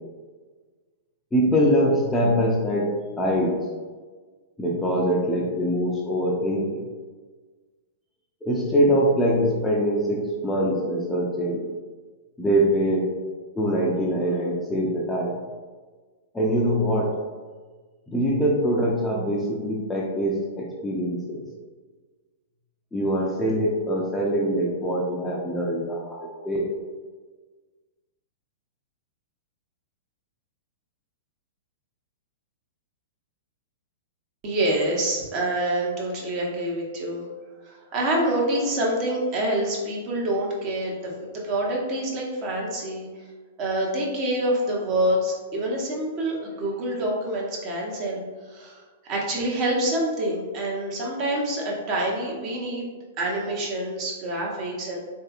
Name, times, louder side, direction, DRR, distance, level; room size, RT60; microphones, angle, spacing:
voice 1, 1.3-2.9 3.2-3.6 4.6-6.8 8.4-11.6 12.4-13.1 13.6-15.4 16.3-17.1 18.1-21.4 22.9-26.7, equal, 10° left, -3 dB, 0.5 m, -23 dB
voice 2, 34.4-37.3 37.6-43.1 43.6-48.2 48.5-55.0, right 1 dB, 40° right, -2 dB, 0.8 m, -26 dB
3.2 x 2.7 x 2.3 m, 1.4 s
figure-of-eight pair, 105°, 0 cm